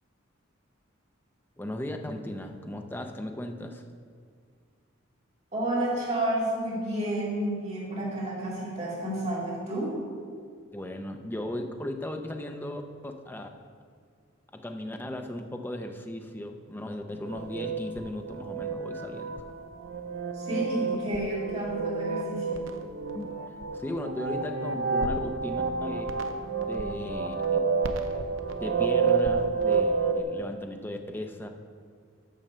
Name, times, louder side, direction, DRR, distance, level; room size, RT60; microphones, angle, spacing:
voice 1, 1.6-3.8 10.7-13.5 14.5-19.4 23.1-23.3 23.7-26.1 26.7-27.6 28.6-31.5, left 1 dB, 10° left, 5 dB, 0.5 m, -36 dB
voice 2, 5.5-9.9 20.3-22.6, right 1 dB, 35° right, -6 dB, 2.4 m, -30 dB
sound 1, 17.2-30.2, right 5 dB, 75° right, 0.6 m, -29 dB
7.3 x 5.5 x 6.7 m, 2.1 s
head